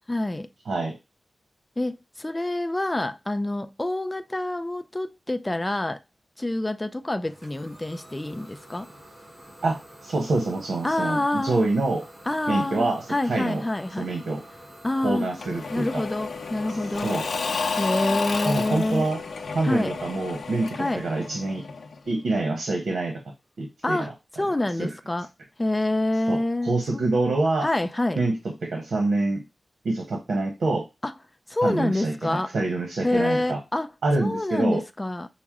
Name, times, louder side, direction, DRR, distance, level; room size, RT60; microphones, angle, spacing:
voice 1, 0.1-0.5 1.8-6.0 6.4-8.9 10.8-11.6 12.3-14.1 14.8-15.3 15.7-17.1 17.8-19.1 19.6-19.9 20.8-21.0 23.8-24.1 24.4-25.3 25.6-27.1 27.6-28.2 31.0-31.1 31.5-32.5 33.0-33.9 34.2-35.3, left 1 dB, 20° left, 0.4 m, -27 dB
Idling / Domestic sounds home sounds, 7.2-22.8, equal, 55° right, 2.5 m, -48 dB
voice 2, 9.6-12.1 12.5-13.6 14.0-14.4 15.0-16.0 17.0-17.3 18.4-19.2 19.5-21.6 22.1-23.2 23.6-24.1 24.8-24.9 26.3-27.7 28.2-29.4 29.8-30.9 31.6-33.6 34.0-34.8, right 2 dB, 80° right, 1.0 m, -26 dB
Engine / Mechanisms / Drill, 15.4-22.1, left 4 dB, 85° left, 0.7 m, -31 dB
6.0 x 2.1 x 3.6 m
wide cardioid pair, 75°, 0 cm